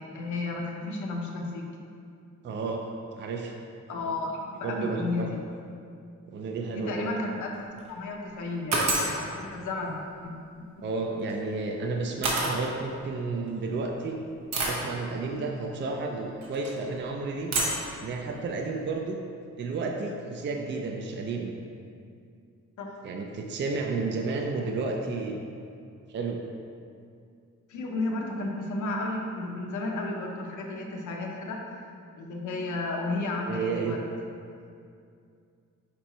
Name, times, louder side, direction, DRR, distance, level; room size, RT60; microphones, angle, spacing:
voice 1, 0.0-1.6 3.9-5.4 6.7-7.5 7.9-10.8 15.3-15.6 22.8-22.9 27.7-34.0, left 2 dB, 75° left, 0 dB, 0.9 m, -33 dB
voice 2, 2.4-2.9 3.2-3.6 4.6-5.3 6.3-7.1 10.8-14.2 14.6-17.5 18.0-19.2 19.6-21.5 23.0-25.4 26.1-26.4 33.4-34.0, right 3 dB, 40° right, 1 dB, 0.4 m, -32 dB
sound 1, 7.5-7.9 8.7-9.2 11.2-11.3 12.2-12.6 13.5-13.6 14.5-14.8 16.4-16.7 17.5-17.9, right 2 dB, 60° right, 1.1 m, -27 dB
5.0 x 4.4 x 4.5 m, 2.4 s
wide cardioid pair, 155°, 30 cm